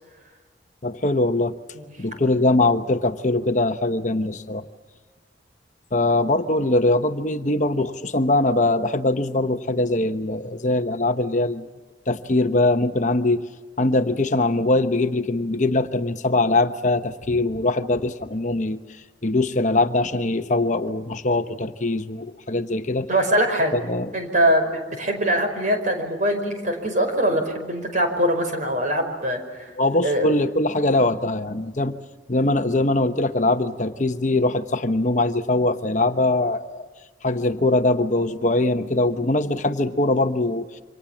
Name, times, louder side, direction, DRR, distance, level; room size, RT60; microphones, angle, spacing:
voice 1, 0.8-1.6 2.0-4.7 5.9-11.7 12.1-13.4 13.8-23.1 23.7-24.1 29.8-31.9 32.3-36.9 37.2-40.7, left 2 dB, 40° left, 8 dB, 1.0 m, -22 dB
voice 2, 23.1-23.8 24.1-24.7 25.0-29.7 30.0-30.4, right 1 dB, 40° right, 5 dB, 5.3 m, -22 dB
28.5 x 25.5 x 7.3 m, 1.4 s
head